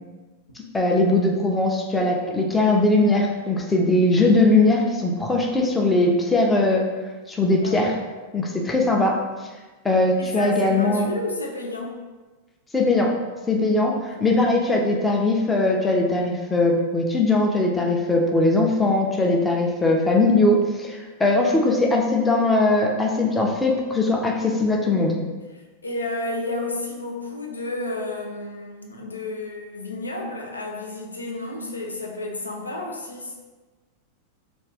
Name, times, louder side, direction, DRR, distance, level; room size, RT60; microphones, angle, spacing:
voice 1, 0.7-6.9 7.3-7.9 8.3-9.2 9.8-11.1 12.7-13.1 13.5-25.2, left 2 dB, 10° left, 0 dB, 0.5 m, -20 dB
voice 2, 7.4-7.9 10.2-12.0 14.1-14.2 25.8-33.3, left 2 dB, 80° left, 0 dB, 0.4 m, -31 dB
2.5 x 2.4 x 3.3 m, 1.3 s
figure-of-eight pair, 90°, 0 cm